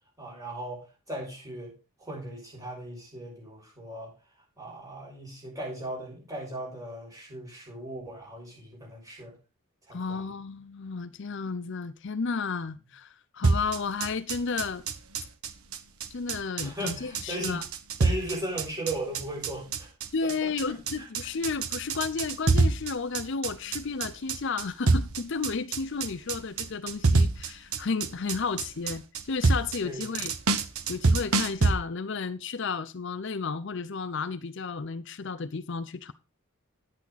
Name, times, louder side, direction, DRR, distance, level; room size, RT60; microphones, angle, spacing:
voice 1, 0.2-4.1 4.6-9.4 9.9-10.3 16.6-17.6 18.0-19.9 20.2-21.3 29.8-30.2, right 1 dB, 15° right, 6.4 m, -38 dB
voice 2, 9.9-14.8 16.1-17.6 20.1-30.3 30.9-36.1, left 4 dB, 55° left, 0.6 m, -32 dB
sound 1, 13.4-31.7, right 3 dB, 85° right, 1.1 m, -26 dB
10.5 x 8.5 x 4.0 m
head